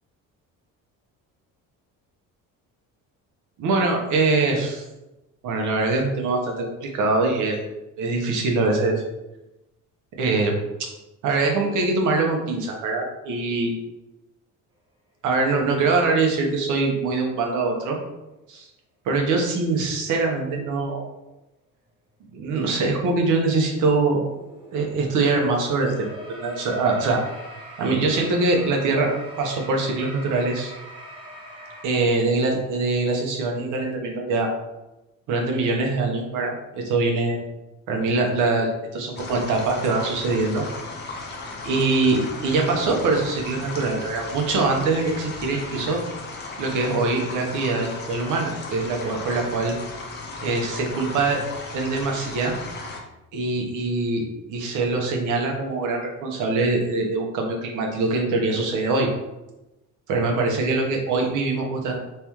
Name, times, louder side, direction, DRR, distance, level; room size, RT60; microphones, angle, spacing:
voice 1, 3.6-4.8 5.4-7.6 8.0-9.0 10.2-10.5 11.2-13.7 15.2-18.0 18.5-18.7 19.0-21.1 22.3-24.2 24.7-27.2 27.8-30.7 31.8-34.5 35.3-37.4 37.9-40.6 41.6-46.0 46.6-49.7 50.4-51.4 51.7-52.5 53.3-59.1 60.1-62.0, right 3 dB, 70° right, 1 dB, 1.0 m, -23 dB
sound 1, 23.3-31.8, equal, 15° right, 0.8 m, -43 dB
sound 2, 39.2-53.0, left 3 dB, 35° left, 0.6 m, -36 dB
3.5 x 3.4 x 3.0 m, 0.97 s
cardioid pair, 165°, 32 cm